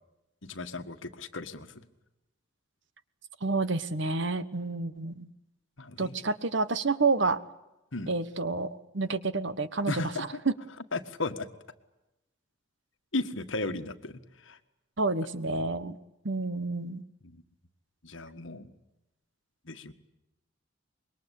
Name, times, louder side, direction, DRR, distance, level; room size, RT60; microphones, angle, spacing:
voice 1, 0.4-1.7 5.8-6.1 7.9-8.1 9.9-10.2 10.9-11.5 13.1-14.6 17.2-17.4 18.0-18.7 19.6-19.9, left 2 dB, 70° left, 9 dB, 1.7 m, -35 dB
voice 2, 3.4-5.3 6.0-7.4 8.1-10.5 15.0-16.0 16.2-17.0, right 3 dB, 60° right, 14 dB, 1.3 m, -29 dB
26.0 x 22.5 x 8.5 m, 0.95 s
head